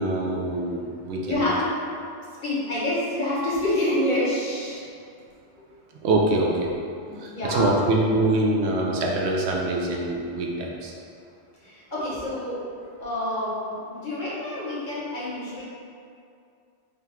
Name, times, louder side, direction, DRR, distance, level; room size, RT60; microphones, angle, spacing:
voice 1, 0.0-1.4 6.0-6.7 7.2-10.9, right 2 dB, 75° right, -2 dB, 0.8 m, -24 dB
voice 2, 1.2-1.7 2.4-4.8 7.0-7.7 11.6-12.6 13.0-15.6, left 1 dB, 50° left, -7 dB, 1.0 m, -27 dB
3.8 x 2.3 x 4.3 m, 2.4 s
omnidirectional pair, 1.2 m